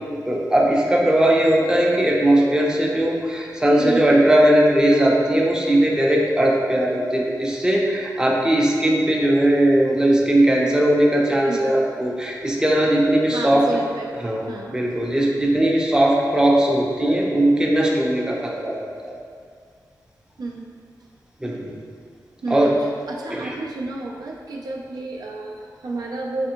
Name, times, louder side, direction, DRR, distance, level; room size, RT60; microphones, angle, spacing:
voice 1, 0.3-13.7 14.2-19.1 21.4-21.8 22.5-22.8 23.3-23.5, right 1 dB, 10° right, -2 dB, 0.5 m, -19 dB
voice 2, 3.8-4.1 11.5-11.8 13.3-14.8 20.4-20.7 22.4-26.5, right 2 dB, 70° right, -1 dB, 0.4 m, -31 dB
3.4 x 3.3 x 2.8 m, 2.1 s
cardioid pair, 65°, 7 cm